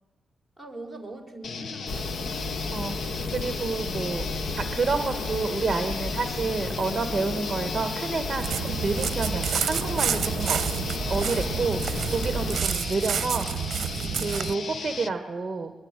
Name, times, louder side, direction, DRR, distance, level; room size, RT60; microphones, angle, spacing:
voice 1, 0.6-2.7 4.4-4.6 12.3-12.7 14.0-14.4, right 2 dB, 5° left, 4 dB, 4.5 m, -43 dB
sound 1, 1.4-15.1, left 5 dB, 50° left, 0.8 m, -36 dB
sound 2, 1.9-12.6, left 2 dB, 70° left, 3.0 m, -33 dB
voice 2, 2.7-4.2 4.6-13.8 14.2-15.7, right 4 dB, 20° right, 8 dB, 1.6 m, -29 dB
sound 3, 8.4-14.5, right 9 dB, 65° right, 0.7 m, -29 dB
23.0 x 22.0 x 9.1 m, 1.1 s
wide cardioid pair, 155°, 0 cm